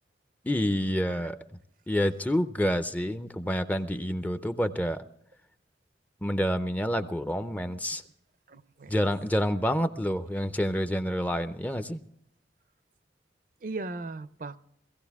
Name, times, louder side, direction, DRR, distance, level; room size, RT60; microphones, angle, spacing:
voice 1, 0.4-1.4 1.9-5.1 6.2-8.0 8.9-12.0, equal, 10° left, 10 dB, 0.5 m, -28 dB
voice 2, 8.5-9.0 13.6-14.6, right 3 dB, 45° right, 14 dB, 0.5 m, -38 dB
17.0 x 16.5 x 3.5 m, 0.72 s
head